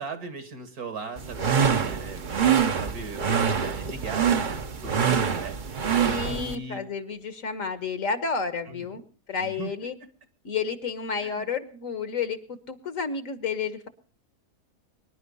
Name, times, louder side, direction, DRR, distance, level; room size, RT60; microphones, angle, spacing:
voice 1, 0.0-5.6 6.3-6.9 8.7-9.0 9.4-9.7 11.2-11.5, right 4 dB, 70° right, 10 dB, 2.5 m, -39 dB
sound 1, 1.2-6.5, right 7 dB, 40° right, 0.8 m, -25 dB
voice 2, 6.1-10.0 10.4-13.9, left 5 dB, 55° left, 12 dB, 1.6 m, -31 dB
24.5 x 11.0 x 5.4 m, 0.43 s
omnidirectional pair, 1.7 m